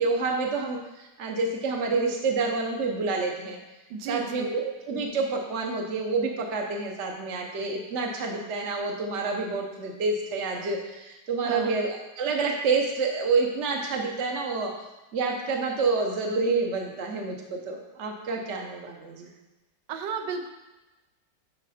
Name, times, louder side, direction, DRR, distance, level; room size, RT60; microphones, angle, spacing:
voice 1, 0.0-3.6 4.1-14.7 15.1-19.3, right 4 dB, 55° right, 1 dB, 0.9 m, -28 dB
voice 2, 3.9-4.6 11.4-11.8 19.9-20.5, right 5 dB, 80° right, 6 dB, 1.4 m, -33 dB
10.0 x 4.1 x 4.2 m, 1.1 s
omnidirectional pair, 2.0 m